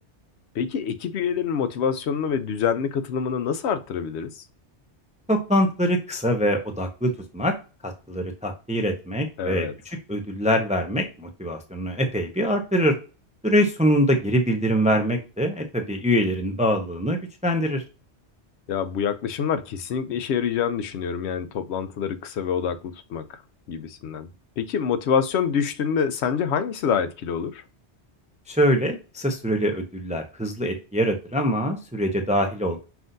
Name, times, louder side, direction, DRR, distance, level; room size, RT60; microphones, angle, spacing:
voice 1, 0.5-4.3 9.4-9.7 18.7-23.4 23.7-24.3 24.6-27.6, left 7 dB, 75° left, 0.8 m, -26 dB
voice 2, 5.3-7.5 7.8-9.7 10.1-12.9 13.4-17.2 17.4-17.8 28.5-32.8, equal, 10° right, 0.5 m, -23 dB
5.7 x 2.6 x 2.6 m
omnidirectional pair, 1.2 m